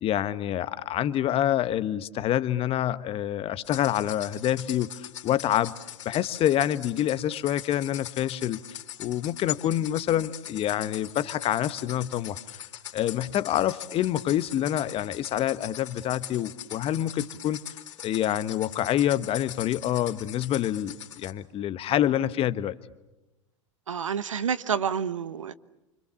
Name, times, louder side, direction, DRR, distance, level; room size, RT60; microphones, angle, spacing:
voice 1, 0.0-5.7 6.0-12.6 12.9-17.6 18.0-22.7, left 11 dB, 35° left, 1.3 m, -27 dB
sound 1, 3.6-21.3, left 11 dB, 70° left, 3.7 m, -42 dB
voice 2, 23.9-25.5, right 7 dB, 80° right, 1.1 m, -28 dB
29.5 x 25.5 x 7.1 m
figure-of-eight pair, 90°, 16 cm